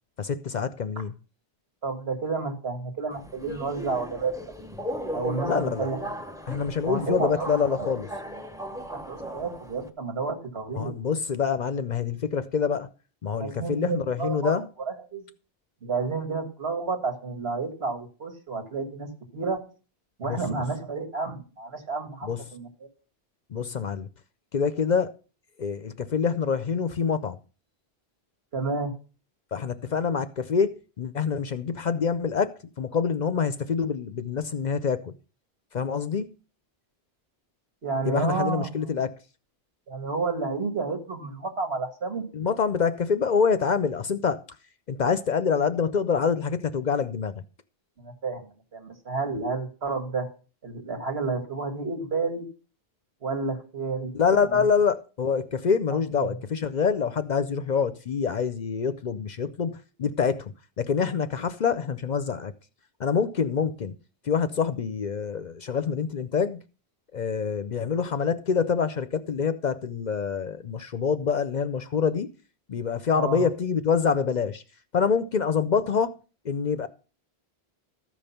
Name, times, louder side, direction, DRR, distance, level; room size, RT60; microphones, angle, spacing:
voice 1, 0.2-1.1 5.4-5.9 6.5-8.1 10.7-12.9 13.2-14.7 20.2-20.6 22.2-22.4 23.5-24.1 24.5-25.1 25.6-27.4 29.5-35.1 35.7-36.4 38.0-39.2 42.3-44.4 44.9-47.4 54.1-62.5 63.0-63.9 64.2-66.6 67.1-72.3 72.7-74.6 74.9-76.2 76.4-76.9, left 6 dB, 50° left, 0.6 m, -26 dB
voice 2, 1.8-4.3 5.1-6.0 6.8-7.9 9.1-10.9 13.4-14.5 14.9-15.2 15.8-19.6 20.2-22.7 28.5-28.9 37.8-38.7 39.9-42.2 48.0-50.3 50.6-52.5 53.2-54.1 54.5-54.6 55.9-56.3 73.1-73.5, right 4 dB, 75° right, 2.1 m, -31 dB
Subway metro underground, 3.1-9.9, equal, 5° right, 0.7 m, -36 dB
13.5 x 5.3 x 5.6 m
omnidirectional pair, 1.1 m